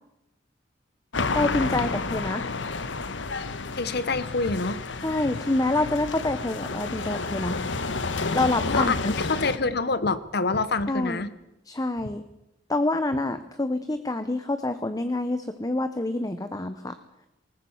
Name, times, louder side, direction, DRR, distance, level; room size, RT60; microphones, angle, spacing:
sound 1, 1.1-9.6, left 3 dB, 85° left, 1.2 m, -30 dB
voice 1, 1.3-2.5 5.0-7.6 8.3-9.1 10.9-11.2 11.7-12.2 12.7-17.0, left 2 dB, 20° left, 10 dB, 0.9 m, -27 dB
voice 2, 3.7-4.8 8.7-11.3, left 3 dB, 60° left, 14 dB, 1.0 m, -26 dB
20.5 x 19.0 x 7.2 m, 0.90 s
head